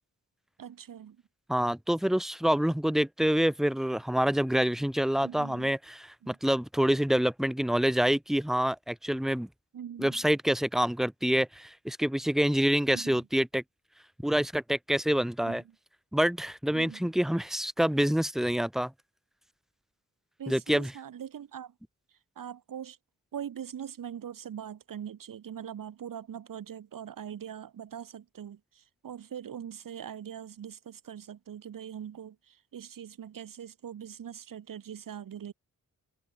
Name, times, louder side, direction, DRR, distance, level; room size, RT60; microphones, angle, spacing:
voice 1, 0.6-1.2 5.2-5.7 6.2-6.4 9.7-10.2 12.9-13.2 15.4-15.7 16.7-17.1 20.4-21.7 22.3-23.0 23.3-35.5, right 9 dB, 75° right, 1.4 m, -42 dB
voice 2, 1.5-9.5 10.0-13.6 14.2-15.6 16.1-18.9 20.5-20.9, equal, ahead, 0.7 m, -27 dB
wide cardioid pair, 145°, 33 cm